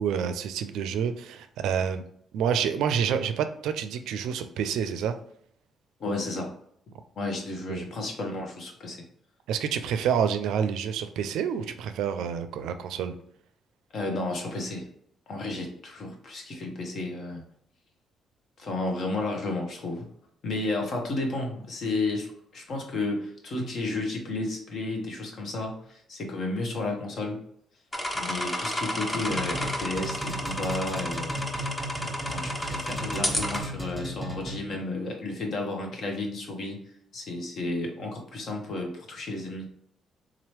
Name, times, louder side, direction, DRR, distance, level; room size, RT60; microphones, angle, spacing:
voice 1, 0.0-2.0 2.3-5.1 7.7-7.9 9.5-13.1, right 7 dB, 85° right, 9 dB, 0.4 m, -28 dB
voice 2, 6.0-6.5 7.2-9.0 13.9-14.9 15.3-17.4 18.6-20.1 20.4-27.4 28.1-31.3 32.2-36.8 37.1-39.7, left 2 dB, 60° left, 1 dB, 1.1 m, -32 dB
sound 1, 27.9-33.6, left 1 dB, 20° left, 0.8 m, -31 dB
sound 2, 29.3-34.8, right 1 dB, 5° right, 1.2 m, -35 dB
3.7 x 3.0 x 3.2 m, 0.67 s
cardioid pair, 90°, 0 cm